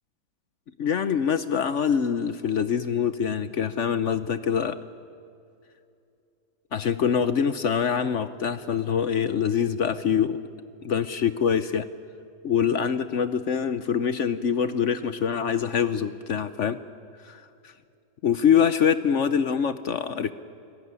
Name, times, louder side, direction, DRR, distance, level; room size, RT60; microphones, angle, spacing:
voice 1, 0.8-4.8 6.7-10.4 10.8-11.9 12.4-16.8 17.2-17.7 18.2-20.3, left 7 dB, 55° left, 12 dB, 0.9 m, -24 dB
29.5 x 17.5 x 9.7 m, 2.6 s
omnidirectional pair, 1.8 m